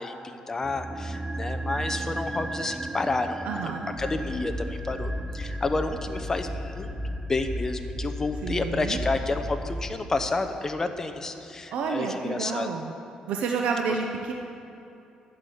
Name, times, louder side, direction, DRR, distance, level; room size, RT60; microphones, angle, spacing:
voice 1, 0.0-3.7 4.0-12.7, left 3 dB, 20° left, 8 dB, 0.8 m, -30 dB
sound 1, 0.6-10.9 11.1-11.2, right 2 dB, 15° right, 0.4 m, -37 dB
voice 2, 3.4-3.9 8.4-9.0 11.7-12.9 13.3-14.3, right 5 dB, 75° right, 2 dB, 0.8 m, -29 dB
sound 2, 3.9-10.0, left 1 dB, 50° left, 1.1 m, -34 dB
11.5 x 8.1 x 7.1 m, 2.8 s
cardioid pair, 125°, 2 cm